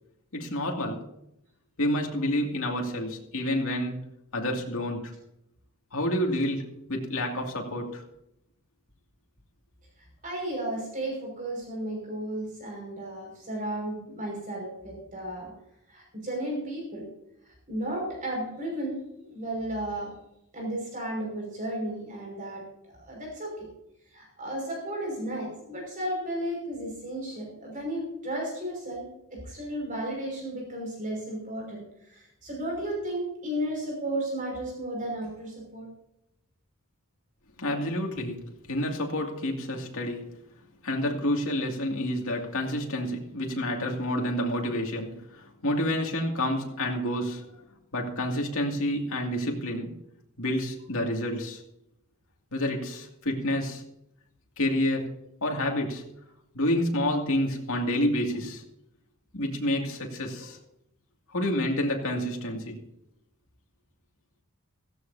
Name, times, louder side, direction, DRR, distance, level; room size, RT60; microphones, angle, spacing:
voice 1, 0.3-1.0 1.8-4.0 4.3-5.1 5.9-8.0 37.6-40.3 40.8-47.6 47.9-50.0 50.4-51.6 52.5-53.8 54.6-56.0 56.5-58.6 59.3-60.6 61.3-62.8, left 1 dB, 65° left, 1 dB, 2.5 m, -29 dB
voice 2, 10.0-15.5 15.9-17.1 17.7-20.1 20.5-22.7 23.0-23.7 24.1-35.9, right 1 dB, 35° right, -1 dB, 5.7 m, -34 dB
16.5 x 16.0 x 2.8 m, 0.82 s
head